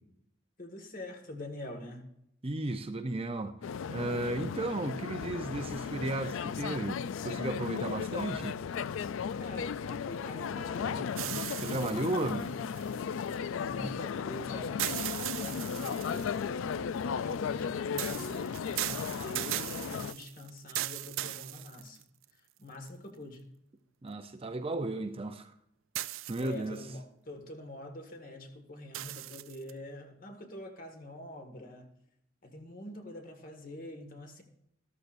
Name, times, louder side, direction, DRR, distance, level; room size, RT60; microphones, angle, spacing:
voice 1, 0.6-2.1 9.4-12.5 13.6-16.9 17.2-22.0 22.6-23.5 26.4-31.9 32.4-34.4, left 1 dB, 45° left, 1.8 m, -45 dB
voice 2, 2.4-3.6 3.9-8.6 11.6-12.4 13.8-13.9 24.0-25.5 26.3-26.8, right 2 dB, 30° right, 0.6 m, -34 dB
sound 1, 3.6-20.1, left 6 dB, 70° left, 0.4 m, -35 dB
sound 2, 11.1-13.3 14.8-16.4 18.0-22.2 22.9-23.0 25.9-26.8 28.9-29.7, right 15 dB, 70° right, 0.4 m, -38 dB
13.5 x 13.5 x 2.6 m
head